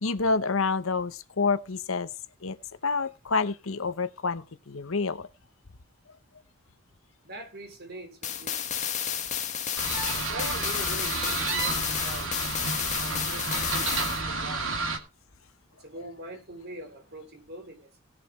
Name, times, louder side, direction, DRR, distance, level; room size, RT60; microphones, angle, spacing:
voice 1, 0.0-2.1 2.4-2.6 2.8-5.3, left 4 dB, 90° left, 1.0 m, -28 dB
voice 2, 7.2-8.7 10.1-12.4 13.0-14.8 15.8-18.0, right 1 dB, 55° right, 3.7 m, -43 dB
sound 1, 8.2-14.2, left 9 dB, 35° left, 1.6 m, -31 dB
sound 2, 9.8-15.0, right 3 dB, 75° right, 2.4 m, -31 dB
18.5 x 6.7 x 4.4 m
head